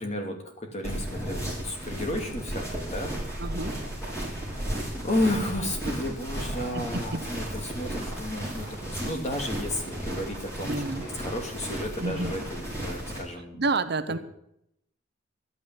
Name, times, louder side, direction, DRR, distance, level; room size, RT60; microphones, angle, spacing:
voice 1, 0.0-3.2 5.0-13.6, left 1 dB, 35° left, 3 dB, 2.7 m, -32 dB
sound 1, 0.8-13.2, right 1 dB, 15° left, 4.7 m, -34 dB
voice 2, 3.4-3.7 6.7-7.2 10.7-11.1 12.0-12.3 13.6-14.2, right 3 dB, 50° right, 11 dB, 0.8 m, -29 dB
12.5 x 9.4 x 8.8 m, 0.76 s
head